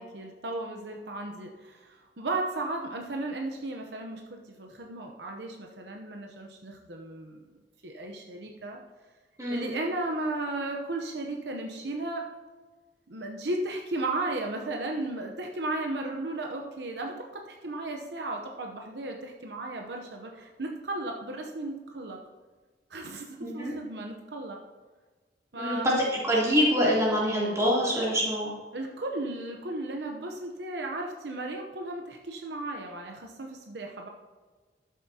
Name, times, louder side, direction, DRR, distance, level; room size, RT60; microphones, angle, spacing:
voice 1, 0.0-7.4 7.8-8.8 9.5-12.3 13.1-22.2 22.9-24.6 25.5-26.0 28.7-34.1, right 2 dB, 70° right, 2 dB, 0.8 m, -35 dB
voice 2, 9.4-9.8 23.4-23.7 25.6-25.9 26.2-28.5, equal, 20° right, -6 dB, 3.0 m, -25 dB
12.5 x 7.3 x 2.8 m, 1.4 s
head